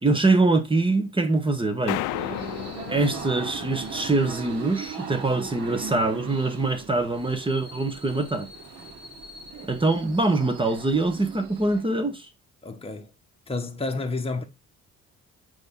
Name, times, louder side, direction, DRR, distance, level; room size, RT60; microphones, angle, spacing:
voice 1, 0.0-2.0 2.9-8.5 9.6-12.3, right 2 dB, 15° right, 1.5 m, -24 dB
sound 1, 1.9-4.3, left 17 dB, 90° left, 0.5 m, -33 dB
sound 2, 2.0-11.8, right 5 dB, 55° right, 3.4 m, -38 dB
voice 2, 12.6-13.1 13.5-14.4, left 3 dB, 20° left, 1.4 m, -30 dB
6.8 x 5.0 x 4.0 m
cardioid pair, 90°, 30 cm